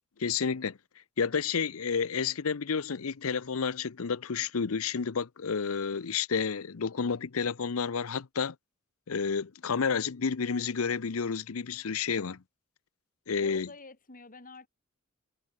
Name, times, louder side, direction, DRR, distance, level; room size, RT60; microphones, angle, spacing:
voice 1, 0.2-0.8 1.2-8.5 9.1-12.4 13.3-13.7, left 6 dB, 80° left, 0.7 m, -30 dB
voice 2, 13.4-14.7, left 3 dB, 40° left, 3.4 m, -48 dB
head